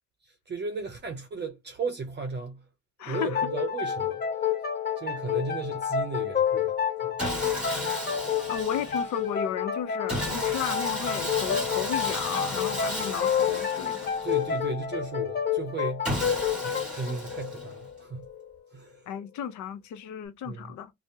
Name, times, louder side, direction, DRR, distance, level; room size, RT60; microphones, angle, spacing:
voice 1, 0.2-2.6 3.0-4.2 5.0-6.8 7.0-7.1 14.2-16.1 16.6-18.3 18.7-19.0 20.4-20.7, right 4 dB, 35° right, 0.6 m, -35 dB
voice 2, 3.0-3.5 8.5-14.1 19.1-20.9, left 8 dB, 70° left, 0.6 m, -34 dB
sound 1, 3.1-18.5, left 8 dB, 35° left, 0.8 m, -29 dB
Sawing, 7.2-9.2 10.1-14.6 16.0-17.9, equal, 5° right, 1.5 m, -34 dB
2.7 x 2.0 x 3.3 m
cardioid pair, 90°, 30 cm